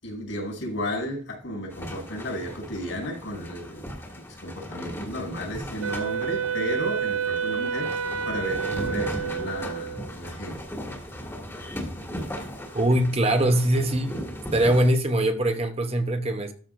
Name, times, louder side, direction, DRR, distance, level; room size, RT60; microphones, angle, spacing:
voice 1, 0.0-3.9 4.2-10.6, equal, 75° left, 5.1 m, -33 dB
sound 1, 1.7-14.9, equal, 15° left, 1.8 m, -37 dB
Wind instrument woodwind instrument, 5.8-10.1, right 7 dB, 85° right, 0.6 m, -29 dB
voice 2, 12.7-14.2 14.5-16.5, right 1 dB, 30° right, 0.8 m, -22 dB
13.0 x 6.4 x 2.6 m
head